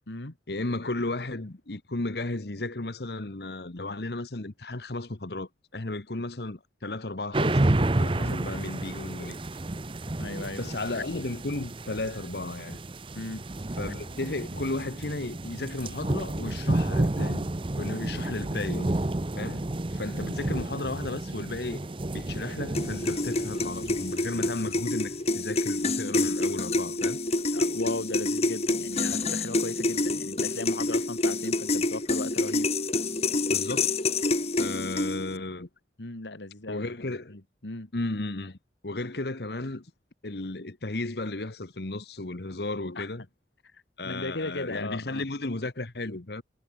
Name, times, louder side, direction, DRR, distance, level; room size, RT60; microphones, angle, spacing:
voice 1, 0.5-7.7 8.0-9.4 10.6-12.8 13.8-17.5 17.8-19.0 19.3-19.6 19.9-21.9 22.1-27.2 33.5-33.9 34.6-35.7 36.7-37.4 37.9-38.6 38.8-39.9 40.2-43.2 44.0-46.4, left 2 dB, 60° left, 1.3 m, -34 dB
sound 1, 7.3-25.1, right 1 dB, 30° right, 0.7 m, -31 dB
voice 2, 10.2-10.6 13.2-13.4 27.5-32.7 36.0-37.9 43.0-43.1 43.7-45.2, left 2 dB, 80° left, 2.1 m, -37 dB
sound 2, 22.7-35.4, left 2 dB, 35° left, 2.1 m, -27 dB
head